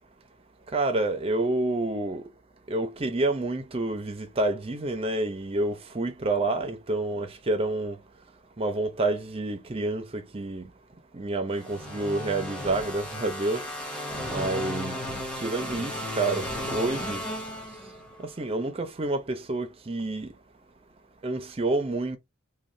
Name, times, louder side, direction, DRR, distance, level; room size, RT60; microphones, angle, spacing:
voice 1, 0.7-2.2 2.7-8.0 8.6-10.7 11.1-13.6 14.3-15.0 15.4-17.3 18.2-20.3 21.2-22.2, right 2 dB, 25° right, 0.5 m, -28 dB
sound 1, 11.6-18.3, left 1 dB, 5° left, 0.8 m, -34 dB
2.6 x 2.2 x 3.1 m
head